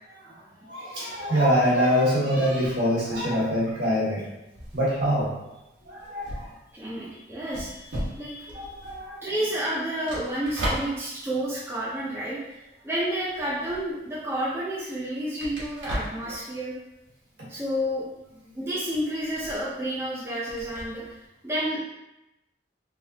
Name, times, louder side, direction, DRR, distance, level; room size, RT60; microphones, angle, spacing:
voice 1, 0.2-4.3 4.7-5.3 5.8-6.5 8.5-9.2 17.4-17.5, equal, 65° right, -6 dB, 1.5 m, -25 dB
sound 1, 2.8-12.8 13.1-21.2, equal, 85° right, 1.4 m, -38 dB
voice 2, 6.7-8.9 9.2-16.7 17.5-18.1 18.6-21.2 21.4-21.8, right 1 dB, 15° right, -8 dB, 0.6 m, -30 dB
3.3 x 3.3 x 2.8 m, 0.94 s
head